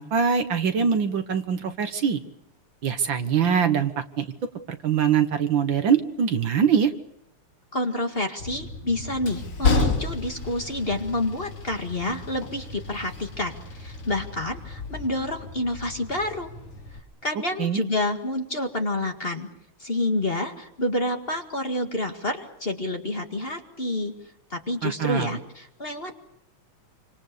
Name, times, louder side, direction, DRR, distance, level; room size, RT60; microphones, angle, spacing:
voice 1, 0.0-2.2 2.8-3.9 4.2-4.3 4.7-6.9 17.6-17.8 24.8-25.4, right 7 dB, 60° right, 9 dB, 2.0 m, -23 dB
voice 2, 7.7-16.5 17.2-19.5 19.8-24.1 24.5-26.2, left 1 dB, 25° left, 4 dB, 2.1 m, -28 dB
Train, 8.4-17.0, left 4 dB, 90° left, 3.8 m, -31 dB
28.0 x 25.5 x 6.9 m, 0.79 s
omnidirectional pair, 2.4 m